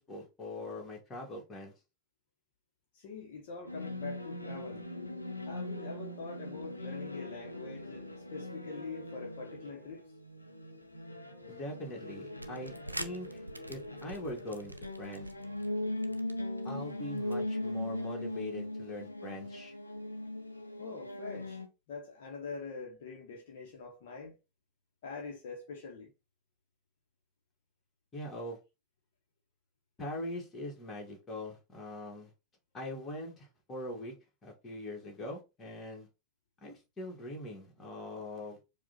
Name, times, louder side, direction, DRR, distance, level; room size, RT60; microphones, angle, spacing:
voice 1, 0.0-1.7 11.5-15.3 16.6-19.7 28.1-28.6 30.0-32.3 32.7-34.1 34.4-36.1 36.6-38.6, left 1 dB, 20° left, 1.9 m, -42 dB
voice 2, 2.9-4.9 5.5-10.0 20.8-21.6 21.9-24.4 25.0-26.1, left 4 dB, 55° left, 1.1 m, -44 dB
sound 1, 3.7-21.7, left 1 dB, 85° left, 0.7 m, -40 dB
sound 2, 12.3-17.4, right 1 dB, 85° right, 0.5 m, -47 dB
4.7 x 2.5 x 4.0 m
figure-of-eight pair, 90°, 0 cm